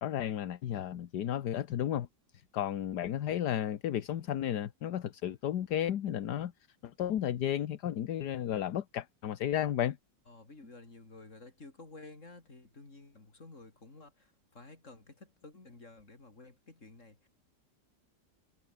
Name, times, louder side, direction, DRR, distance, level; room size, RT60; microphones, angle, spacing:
voice 1, 0.0-2.1 2.5-6.5 6.8-10.0, left 10 dB, 70° left, 1.6 m, -33 dB
voice 2, 10.3-17.3, left 3 dB, 45° left, 4.5 m, -52 dB
omnidirectional pair, 1.9 m